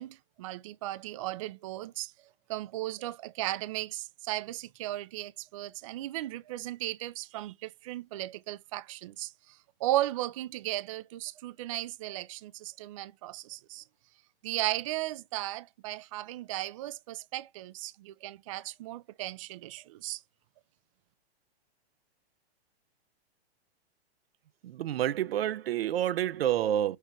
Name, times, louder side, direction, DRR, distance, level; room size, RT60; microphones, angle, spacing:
voice 1, 0.0-2.1 2.5-13.8 14.4-20.2, right 16 dB, 35° right, 0.4 m, -36 dB
voice 2, 24.6-27.0, right 11 dB, 80° right, 0.7 m, -28 dB
6.4 x 3.2 x 4.5 m
hypercardioid pair, 155°, 30 cm